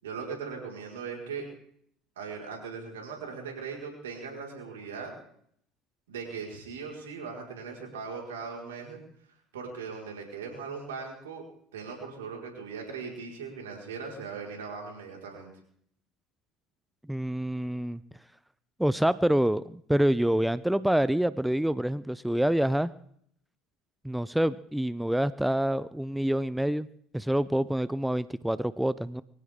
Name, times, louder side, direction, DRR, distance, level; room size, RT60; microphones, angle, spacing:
voice 1, 0.0-1.5 2.2-5.1 6.1-9.0 9.5-11.5 11.7-15.5, right 5 dB, 85° right, 0 dB, 5.0 m, -39 dB
voice 2, 17.1-18.0 18.8-22.9 24.0-26.9 27.1-29.2, right 1 dB, 5° right, 17 dB, 0.6 m, -26 dB
23.5 x 16.0 x 3.8 m, 0.67 s
hypercardioid pair, 70°, 0 cm